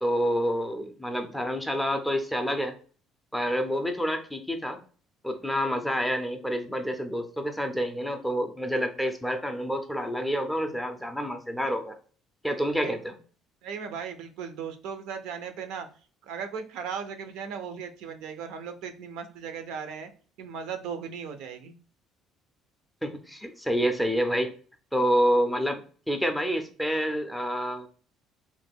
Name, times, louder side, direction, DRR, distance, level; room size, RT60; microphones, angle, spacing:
voice 1, 0.0-2.8 3.3-4.8 5.2-12.0 12.4-13.2 23.0-24.5 24.9-27.9, equal, ahead, 6 dB, 0.4 m, -28 dB
voice 2, 13.6-15.9 16.3-20.1 20.4-21.7, right 6 dB, 80° right, 8 dB, 0.5 m, -37 dB
3.1 x 2.1 x 3.4 m, 0.40 s
cardioid pair, 165°, 0 cm